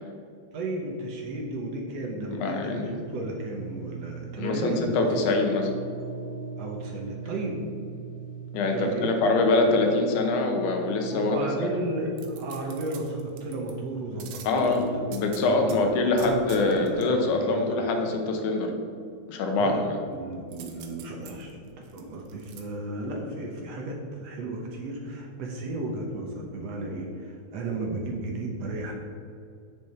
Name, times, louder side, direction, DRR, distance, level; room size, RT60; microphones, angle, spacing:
voice 1, 0.5-4.8 6.6-7.6 8.7-9.1 9.4-9.7 11.1-14.9 15.3-18.0 19.6-19.8 20.1-29.0, right 2 dB, 65° right, 0 dB, 1.9 m, -34 dB
voice 2, 2.3-3.0 4.4-5.7 8.5-11.4 14.4-18.7 19.3-19.7, left 3 dB, 80° left, 3 dB, 2.5 m, -24 dB
sound 1, 2.8-15.1, right 3 dB, 50° right, 3.3 m, -40 dB
sound 2, 12.2-13.7 14.2-15.8 16.2-17.1 20.5-22.6 23.1-23.2, right 8 dB, 85° right, 2.4 m, -46 dB
8.3 x 7.0 x 4.3 m, 2.4 s
omnidirectional pair, 3.5 m